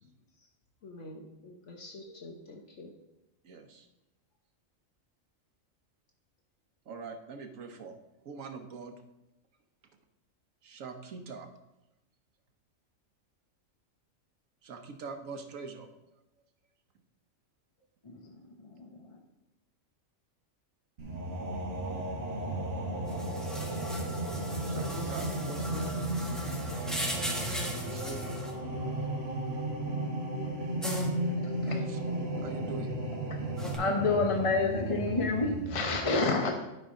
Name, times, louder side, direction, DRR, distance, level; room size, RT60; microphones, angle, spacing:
voice 1, 0.0-0.5 0.8-2.9, left 2 dB, 65° left, 2 dB, 1.2 m, -48 dB
voice 2, 3.4-3.9 6.9-8.0 8.2-9.0 10.6-11.5 14.6-15.9 24.7-26.0 27.9-28.4 31.6-32.0 32.4-33.0, right 4 dB, 80° right, 6 dB, 1.3 m, -43 dB
voice 3, 18.0-19.2 27.5-27.7 30.3-30.4 30.7-31.1 31.3-31.7 33.3-33.4 33.8-36.5, left 3 dB, 30° left, 2 dB, 0.8 m, -30 dB
sound 1, 21.0-36.0, right 1 dB, 50° right, 1.5 m, -34 dB
sound 2, 23.1-28.5 30.8-31.1 33.6-33.7, right 1 dB, ahead, 1.3 m, -38 dB
12.0 x 5.6 x 3.7 m, 0.94 s
omnidirectional pair, 1.4 m